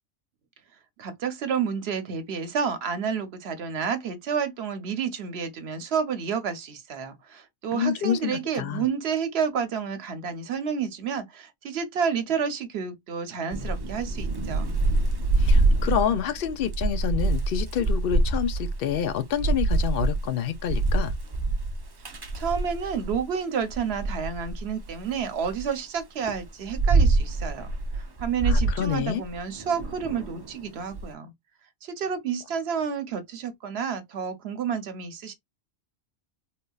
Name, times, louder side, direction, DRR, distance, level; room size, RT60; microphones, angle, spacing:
voice 1, 1.0-14.7 22.1-31.3 31.8-35.3, right 6 dB, 65° right, 0.9 m, -30 dB
voice 2, 7.7-8.8 15.4-21.1 28.5-29.2, left 9 dB, 65° left, 0.7 m, -28 dB
Thunder / Rain, 13.5-23.2 23.7-25.6 26.2-31.0, right 2 dB, 30° right, 0.4 m, -25 dB
3.6 x 2.6 x 2.3 m
omnidirectional pair, 1.2 m